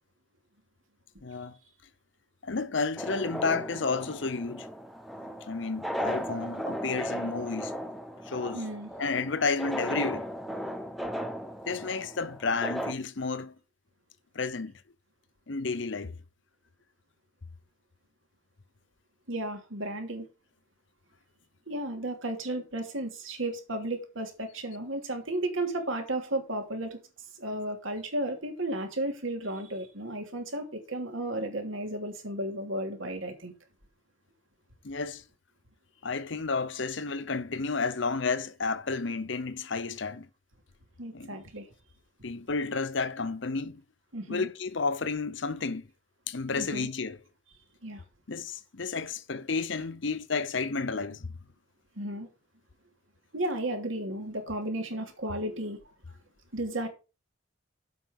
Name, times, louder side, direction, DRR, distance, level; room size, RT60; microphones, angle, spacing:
voice 1, 1.2-1.6 2.4-4.7 5.5-7.7 8.3-8.7 9.0-10.3 11.7-13.5 14.3-14.7 15.5-16.2 34.8-35.2 36.0-40.3 41.1-41.4 42.2-43.8 44.3-45.9 46.3-47.2 48.3-51.3, left 4 dB, 65° left, 0.8 m, -31 dB
sound 1, 3.0-12.9, equal, ahead, 0.9 m, -36 dB
voice 2, 8.5-8.9 19.3-20.3 21.7-27.0 27.4-33.5 41.0-41.6 44.1-44.5 46.6-46.9 47.8-48.0 52.0-52.3 53.3-55.8 56.5-56.9, right 1 dB, 80° right, 2.9 m, -33 dB
7.8 x 5.7 x 7.1 m
head